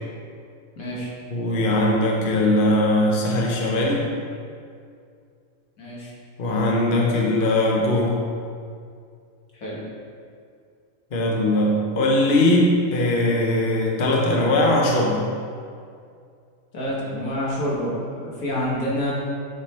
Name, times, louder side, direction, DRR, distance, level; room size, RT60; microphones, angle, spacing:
voice 1, 0.8-1.1 5.8-6.1 9.5-9.8 16.7-19.1, equal, 90° left, -5 dB, 2.0 m, -27 dB
voice 2, 1.3-4.1 6.4-8.2 11.1-15.3, left 1 dB, 45° left, -2 dB, 1.0 m, -20 dB
8.5 x 3.8 x 4.3 m, 2.3 s
omnidirectional pair, 1.4 m